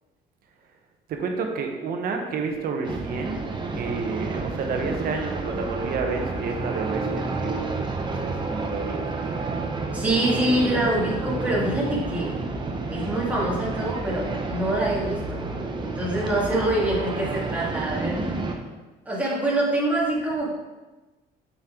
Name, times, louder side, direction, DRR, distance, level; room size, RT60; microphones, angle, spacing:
voice 1, 1.1-3.5 3.7-7.7 8.0-9.3, right 4 dB, 60° right, 3 dB, 1.2 m, -30 dB
sound 1, 2.8-18.6, right 3 dB, 25° right, 0.9 m, -30 dB
voice 2, 9.9-12.4 12.9-15.4 15.8-18.3 19.1-20.5, right 1 dB, 10° right, -5 dB, 2.3 m, -25 dB
7.2 x 5.8 x 3.9 m, 1.2 s
cardioid pair, 110°, 17 cm